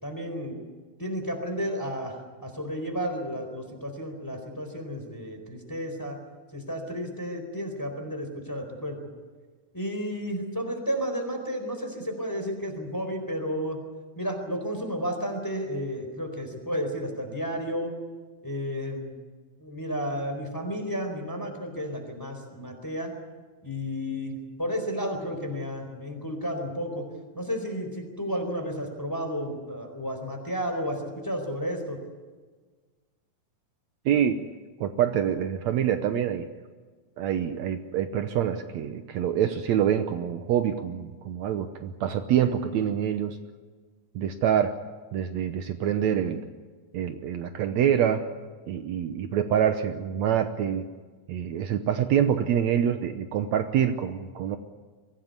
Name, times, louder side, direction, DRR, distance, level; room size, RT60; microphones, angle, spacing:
voice 1, 0.0-0.6 1.0-6.2 6.5-9.0 9.7-13.8 14.2-17.9 18.4-19.1 19.6-23.1 23.6-27.0 27.3-32.0, equal, 5° left, 4 dB, 4.0 m, -32 dB
voice 2, 34.1-34.4 34.8-36.5 37.2-43.4 44.2-44.7 45.1-46.4 46.9-48.2 48.7-50.9 51.3-54.6, right 9 dB, 70° right, 8 dB, 2.1 m, -26 dB
24.0 x 16.5 x 9.6 m, 1.4 s
omnidirectional pair, 3.5 m